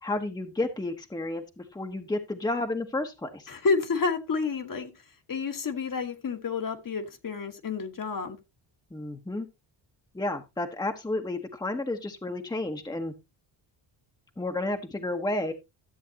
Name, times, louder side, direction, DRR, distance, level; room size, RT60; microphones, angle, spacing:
voice 1, 0.0-3.5 8.9-9.5 10.1-13.1 14.4-15.5, left 2 dB, 10° left, 1.0 m, -31 dB
voice 2, 3.5-4.9 5.3-8.4, left 4 dB, 45° left, 1.4 m, -29 dB
13.0 x 7.4 x 2.8 m
cardioid pair, 105°, 47 cm